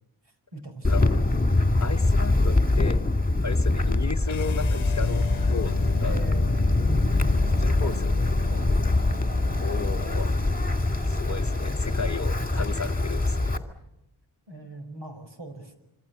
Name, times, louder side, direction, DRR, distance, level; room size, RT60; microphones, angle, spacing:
voice 1, 0.2-2.4 6.0-6.7 7.3-8.1 8.5-9.0 9.8-10.0 14.5-15.8, right 3 dB, 60° right, 6 dB, 5.2 m, -42 dB
Wind, 0.8-13.6, left 2 dB, 15° left, 2.4 m, -23 dB
voice 2, 0.9-1.3 1.8-3.0 3.4-6.2 7.6-8.3 9.6-10.3 11.0-13.7, left 5 dB, 35° left, 8 dB, 0.9 m, -34 dB
sound 1, 4.3-10.4, left 8 dB, 90° left, 0.9 m, -37 dB
26.5 x 26.5 x 7.0 m, 0.90 s
wide cardioid pair, 100°, 48 cm